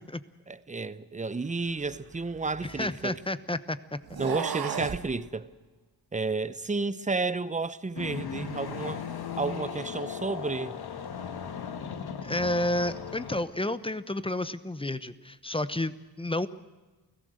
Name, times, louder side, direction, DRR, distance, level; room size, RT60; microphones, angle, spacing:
voice 1, 0.5-3.2 4.2-5.5 6.1-9.0 9.4-10.7, right 3 dB, 20° right, 0.9 m, -31 dB
sound 1, 1.8-3.3 4.0-5.1, right 7 dB, 60° right, 1.6 m, -35 dB
voice 2, 2.6-4.2 12.2-16.5, left 1 dB, 15° left, 1.0 m, -31 dB
sound 2, 7.9-13.4, left 6 dB, 65° left, 1.9 m, -37 dB
29.5 x 16.5 x 6.6 m
cardioid pair, 85°, 41 cm